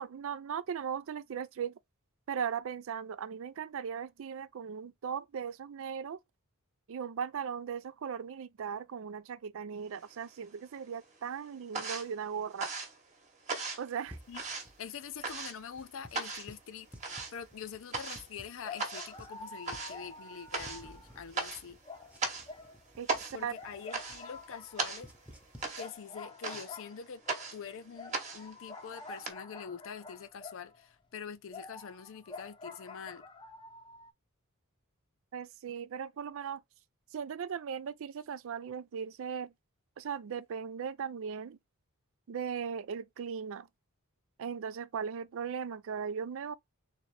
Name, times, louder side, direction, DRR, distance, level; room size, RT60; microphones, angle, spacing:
voice 1, 0.0-1.7 2.3-6.2 6.9-12.7 13.8-14.2 23.0-23.5 35.3-36.6 37.1-39.5 40.0-41.6 42.3-43.7 44.4-46.5, right 7 dB, 65° right, 0.4 m, -38 dB
sound 1, 9.9-10.7 11.0-29.3, right 4 dB, 30° right, 1.1 m, -39 dB
sound 2, 14.1-25.8, equal, 5° right, 0.9 m, -56 dB
voice 2, 14.8-16.9 17.3-21.8 23.3-25.1 25.8-27.2 27.5-33.2, left 7 dB, 65° left, 0.5 m, -45 dB
sound 3, 18.6-21.5 21.8-23.2 23.5-30.9 31.5-34.1, left 3 dB, 20° left, 0.6 m, -48 dB
3.7 x 3.1 x 3.3 m
head